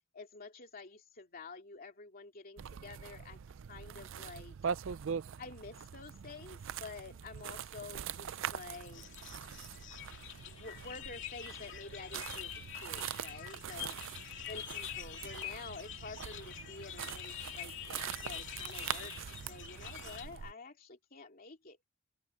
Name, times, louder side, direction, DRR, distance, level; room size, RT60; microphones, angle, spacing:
voice 1, 0.1-3.4 3.7-4.5 5.4-9.0 10.5-12.5 12.8-13.9 14.5-21.8, left 3 dB, 45° left, 2.7 m, -49 dB
sound 1, 2.6-20.5, right 8 dB, 65° right, 0.4 m, -43 dB
sound 2, 8.7-20.3, left 11 dB, 60° left, 2.8 m, -46 dB
open air
head